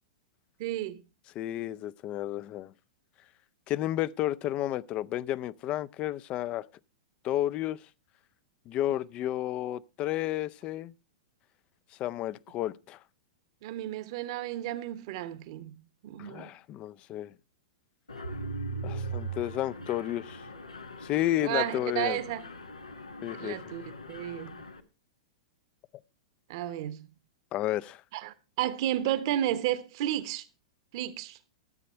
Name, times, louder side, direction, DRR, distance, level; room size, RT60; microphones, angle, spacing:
voice 1, 0.6-1.0 13.6-15.8 16.0-16.5 21.4-22.5 23.3-24.6 26.5-27.1 28.1-30.4 30.9-31.4, right 12 dB, 55° right, 1.1 m, -32 dB
voice 2, 1.3-2.7 3.7-6.6 7.2-7.8 8.7-10.9 12.0-13.0 16.2-17.3 18.8-20.4 21.0-22.2 23.2-23.7 27.5-28.0, left 13 dB, 35° left, 0.5 m, -32 dB
Mechanisms, 18.1-24.8, right 2 dB, 90° left, 1.1 m, -40 dB
13.5 x 7.7 x 4.4 m
figure-of-eight pair, 105°, 3 cm